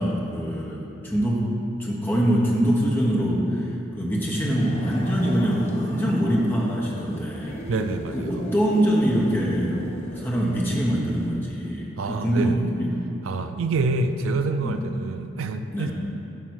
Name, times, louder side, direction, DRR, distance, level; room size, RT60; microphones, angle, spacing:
voice 1, 0.0-1.4 1.8-3.7 3.9-7.6 8.1-9.9 10.1-12.9 14.6-14.8 15.7-15.9, equal, 10° left, -4 dB, 1.1 m, -24 dB
sound 1, 4.5-11.3, equal, 35° left, 0.8 m, -38 dB
voice 2, 7.7-8.5 12.0-12.6 13.2-15.9, right 3 dB, 75° right, 8 dB, 0.4 m, -27 dB
10.5 x 3.9 x 6.3 m, 2.9 s
head